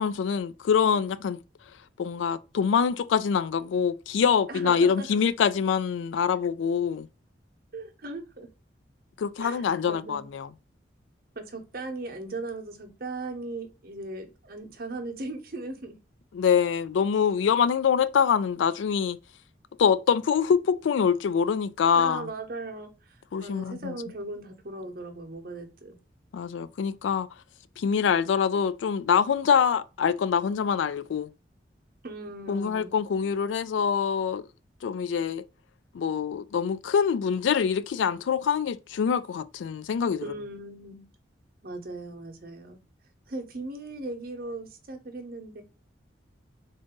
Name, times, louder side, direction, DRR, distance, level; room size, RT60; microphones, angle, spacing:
voice 1, 0.0-1.4 2.0-7.1 9.2-10.5 16.3-19.2 19.8-22.2 23.3-23.9 26.3-27.3 27.8-31.3 32.5-34.4 34.8-35.4 35.9-40.2, left 7 dB, 80° left, 0.3 m, -25 dB
voice 2, 4.5-5.1 7.7-8.5 9.4-10.3 11.3-15.9 21.9-26.0 32.0-33.0 40.2-41.0 41.6-42.8 43.3-45.6, right 2 dB, 50° right, 0.8 m, -38 dB
3.8 x 2.6 x 3.6 m
head